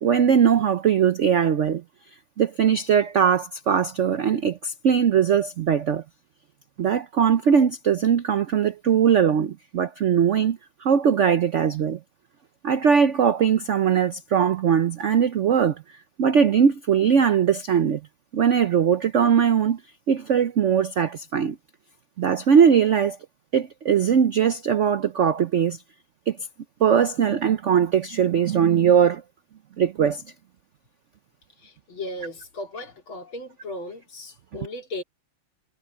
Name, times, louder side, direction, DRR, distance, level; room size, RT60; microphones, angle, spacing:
voice 1, 0.0-1.8 2.4-6.0 6.8-12.0 12.6-15.8 16.2-18.0 18.3-19.8 20.1-21.6 22.2-23.2 23.5-25.8 26.3-26.4 26.8-29.2 29.8-30.2, right 7 dB, 75° right, 0.6 m, -20 dB
voice 2, 31.6-35.0, left 1 dB, 85° left, 4.1 m, -36 dB
omnidirectional pair, 2.2 m